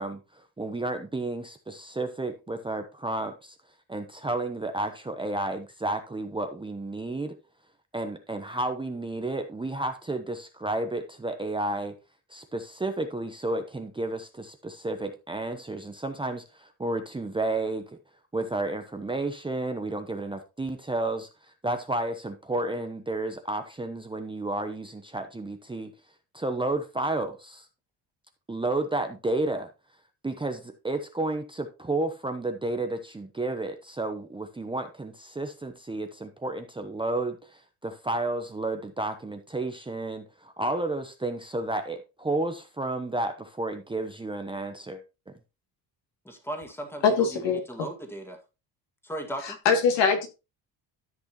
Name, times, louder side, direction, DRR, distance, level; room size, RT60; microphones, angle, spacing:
voice 1, 0.0-3.5 3.9-7.3 7.9-11.9 12.3-17.8 18.3-21.3 21.6-25.9 26.3-27.7 28.5-29.7 30.2-45.0, right 2 dB, 10° right, 0.8 m, -31 dB
voice 2, 46.3-47.4 47.7-48.4 49.0-49.6, right 1 dB, 5° left, 2.0 m, -37 dB
voice 3, 47.0-47.6 49.4-50.3, left 5 dB, 70° left, 2.6 m, -22 dB
13.5 x 6.1 x 3.0 m
cardioid pair, 130°, 45 cm